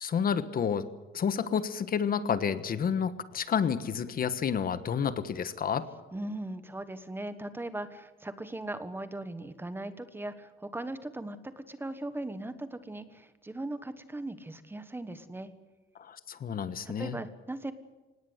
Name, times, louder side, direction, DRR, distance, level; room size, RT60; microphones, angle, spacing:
voice 1, 0.0-0.9 1.1-5.9 16.0-17.2, left 7 dB, 45° left, 13 dB, 1.3 m, -30 dB
voice 2, 6.1-15.5 16.8-17.7, right 1 dB, 10° right, 11 dB, 1.3 m, -39 dB
26.0 x 19.5 x 8.1 m, 1.2 s
cardioid pair, 170°, 20 cm